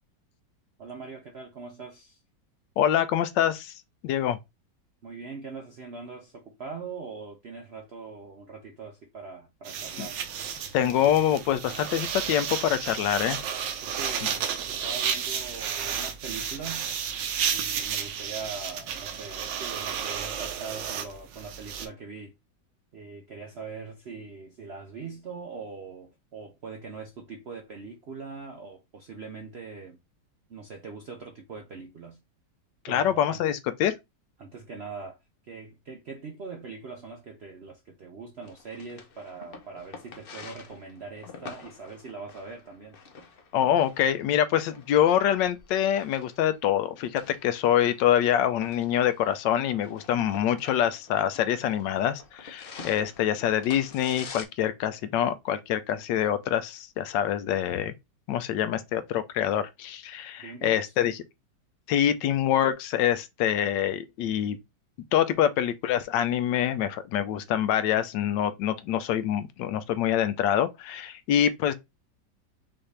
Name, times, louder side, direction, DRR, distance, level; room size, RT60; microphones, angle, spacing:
voice 1, 0.8-2.2 5.0-10.2 13.8-14.4 14.7-16.9 17.5-22.3 22.9-30.0 30.5-32.2 32.9-33.4 34.4-35.2 35.4-43.0 60.4-60.9, right 4 dB, 65° right, 0.6 m, -42 dB
voice 2, 2.8-4.4 10.0-10.1 10.7-13.4 32.8-33.9 43.5-57.9 58.3-61.2 61.9-64.6 65.1-71.7, left 10 dB, 85° left, 1.2 m, -25 dB
sound 1, 9.7-21.9, right 8 dB, 90° right, 1.4 m, -32 dB
sound 2, 38.4-54.4, left 4 dB, 55° left, 0.6 m, -48 dB
5.6 x 2.6 x 3.2 m
omnidirectional pair, 1.9 m